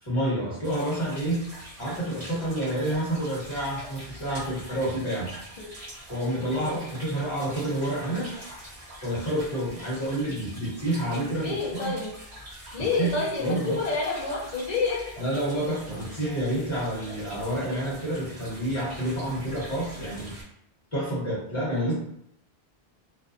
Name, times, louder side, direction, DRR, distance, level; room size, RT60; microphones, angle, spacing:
voice 1, 0.0-1.5 1.8-5.3 6.1-8.3 9.0-11.9 13.0-13.8 15.2-20.3 20.9-21.9, right 1 dB, 30° left, -8 dB, 1.3 m, -29 dB
sound 1, 0.6-20.4, equal, 35° right, 0.9 m, -44 dB
voice 2, 11.4-12.1 12.7-15.0, left 4 dB, 50° left, -3 dB, 0.6 m, -28 dB
2.5 x 2.2 x 2.6 m, 0.74 s
omnidirectional pair, 1.1 m